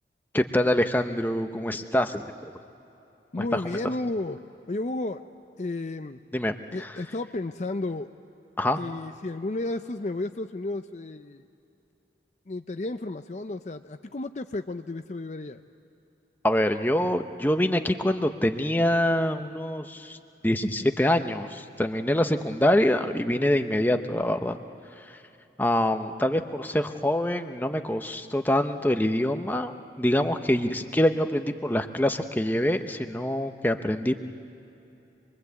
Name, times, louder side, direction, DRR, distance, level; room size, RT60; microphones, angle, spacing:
voice 1, 0.3-2.5 3.4-3.6 6.3-6.5 6.8-7.0 8.6-8.8 16.4-20.2 20.4-24.6 24.9-25.2 25.6-34.2, left 1 dB, 10° left, 7 dB, 0.8 m, -25 dB
voice 2, 3.3-4.4 4.7-5.3 5.6-6.2 6.7-8.1 8.8-11.4 12.5-15.6, left 2 dB, 40° left, 8 dB, 0.5 m, -32 dB
26.0 x 22.0 x 8.2 m, 2.8 s
head